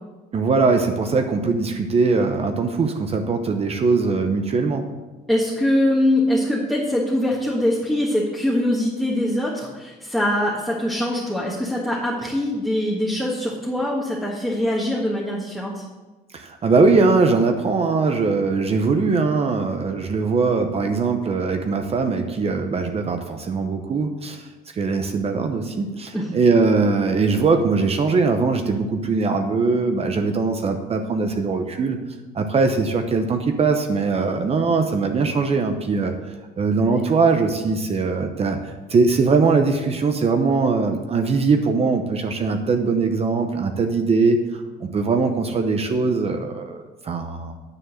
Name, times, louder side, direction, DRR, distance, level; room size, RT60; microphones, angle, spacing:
voice 1, 0.3-4.8 16.3-24.5 24.7-32.0 32.3-36.1 36.6-47.5, right 4 dB, 35° right, 6 dB, 0.9 m, -21 dB
voice 2, 5.3-15.8 26.1-26.3 36.8-37.0, left 1 dB, ahead, -5 dB, 1.6 m, -23 dB
9.8 x 4.5 x 7.4 m, 1.2 s
cardioid pair, 110°, 17 cm